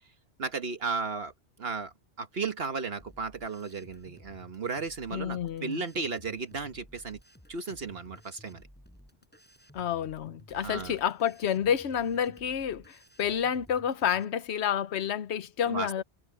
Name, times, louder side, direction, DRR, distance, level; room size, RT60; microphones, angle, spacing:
voice 1, 0.4-1.3 1.6-7.2 7.5-8.6 10.5-11.0 15.7-16.0, right 4 dB, 60° right, 1.5 m, -35 dB
sound 1, 3.0-14.2, equal, 10° left, 5.0 m, -55 dB
voice 2, 5.1-5.8 9.7-16.0, left 9 dB, 75° left, 1.1 m, -29 dB
omnidirectional pair, 1.2 m